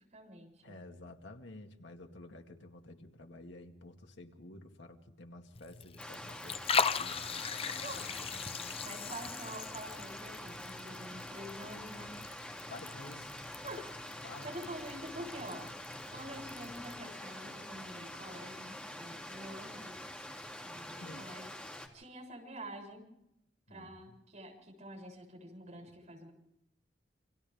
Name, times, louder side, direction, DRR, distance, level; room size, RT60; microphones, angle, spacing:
voice 1, 0.1-0.8 7.6-8.1 8.8-12.2 13.6-15.7 16.1-20.0 20.6-21.5 21.9-23.1 23.7-26.3, right 1 dB, 40° right, 1 dB, 7.5 m, -47 dB
voice 2, 0.6-9.2 12.7-13.3 14.2-14.5 15.9-16.0 21.0-21.3 23.7-24.2, left 2 dB, 85° left, 4 dB, 2.2 m, -51 dB
Liquid, 5.5-17.0, left 6 dB, 35° left, 0.7 m, -40 dB
Stream, 6.0-21.9, left 1 dB, 5° left, 2.8 m, -46 dB
29.0 x 25.5 x 3.6 m, 0.82 s
head